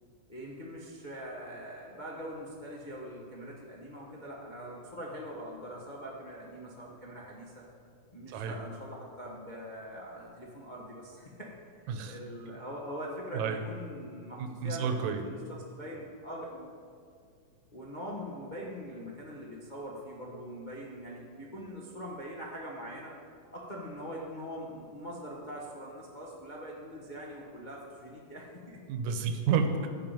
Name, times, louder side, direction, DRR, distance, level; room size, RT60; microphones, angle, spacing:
voice 1, 0.3-7.6 8.1-11.5 12.0-15.4 15.7-16.8 17.7-23.1 23.5-28.8, equal, 80° left, -4 dB, 0.4 m, -42 dB
voice 2, 14.4-15.2 28.9-29.9, right 6 dB, 75° right, 6 dB, 2.2 m, -30 dB
13.5 x 4.8 x 8.9 m, 2.2 s
omnidirectional pair, 3.5 m